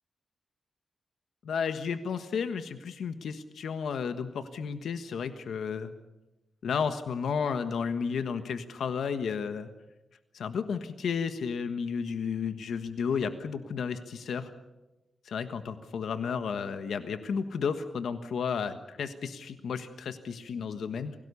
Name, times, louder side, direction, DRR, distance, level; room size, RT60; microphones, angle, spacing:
voice 1, 1.4-5.9 6.6-9.7 10.3-14.5 15.2-21.1, left 6 dB, 90° left, 9 dB, 1.4 m, -32 dB
27.0 x 17.5 x 7.0 m, 1.0 s
wide cardioid pair, 130°, 0 cm